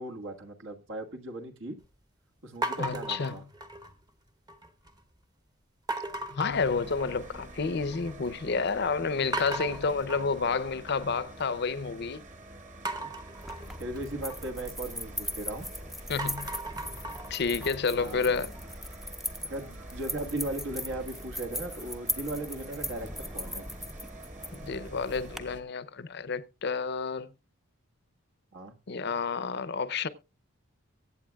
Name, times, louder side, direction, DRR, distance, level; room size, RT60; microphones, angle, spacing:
voice 1, 0.0-1.8 2.4-3.4 13.8-15.7 18.0-18.2 19.5-23.6 28.5-28.7, right 1 dB, 65° right, 1.6 m, -37 dB
sound 1, 2.6-4.1 4.5-5.0 5.9-7.4 7.7-8.3 8.7-8.8 9.3-11.4 12.8-15.6 16.0-18.9, right 2 dB, 20° right, 1.0 m, -38 dB
voice 2, 2.8-3.4 6.3-12.2 16.1-16.6 17.3-18.5 24.5-27.3 28.9-30.1, left 5 dB, 55° left, 0.6 m, -30 dB
sound 2, 6.5-25.6, right 1 dB, 35° right, 1.8 m, -47 dB
sound 3, 13.4-25.4, left 1 dB, ahead, 0.5 m, -39 dB
23.0 x 8.4 x 2.3 m
head